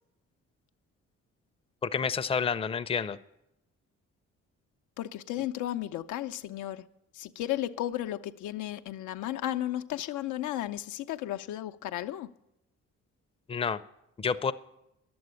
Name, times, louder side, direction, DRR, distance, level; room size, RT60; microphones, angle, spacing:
voice 1, 1.8-3.2 13.5-13.8 14.2-14.5, left 6 dB, 20° left, 0.5 m, -29 dB
voice 2, 5.0-6.9 7.1-12.3, left 13 dB, 85° left, 0.6 m, -34 dB
11.0 x 7.9 x 9.5 m
cardioid pair, 90°, 30 cm